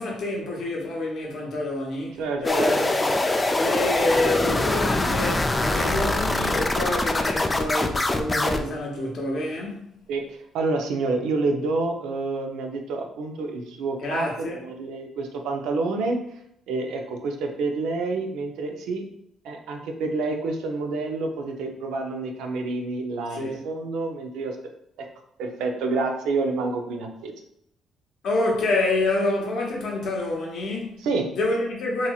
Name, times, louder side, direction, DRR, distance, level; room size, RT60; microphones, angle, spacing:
voice 1, 0.0-9.8 14.0-14.6 23.3-23.6 28.2-31.0 31.3-32.1, left 2 dB, 65° left, 0.8 m, -27 dB
voice 2, 2.2-2.8 10.1-16.2 16.7-19.0 19.4-24.6 25.0-25.1 25.4-27.3 31.0-31.3, right 3 dB, 80° right, 0.4 m, -28 dB
sound 1, 2.4-8.6, left 2 dB, 25° left, 0.3 m, -23 dB
2.9 x 2.7 x 2.3 m
supercardioid pair, 60°, 0 cm